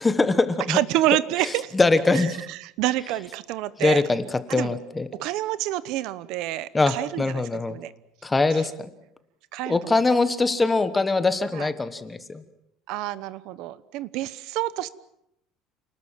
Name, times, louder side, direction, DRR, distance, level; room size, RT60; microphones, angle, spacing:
voice 1, 0.0-0.8 1.7-2.4 3.8-5.1 6.7-7.8 8.2-8.9 9.7-12.4, left 3 dB, 10° left, 11 dB, 1.3 m, -22 dB
voice 2, 0.7-1.7 2.1-4.0 4.5-4.7 5.2-7.4 7.7-7.9 9.5-9.9 11.5-11.7 12.9-14.9, right 15 dB, 60° right, 16 dB, 1.0 m, -28 dB
29.0 x 19.5 x 7.4 m, 0.79 s
cardioid pair, 170°, 0 cm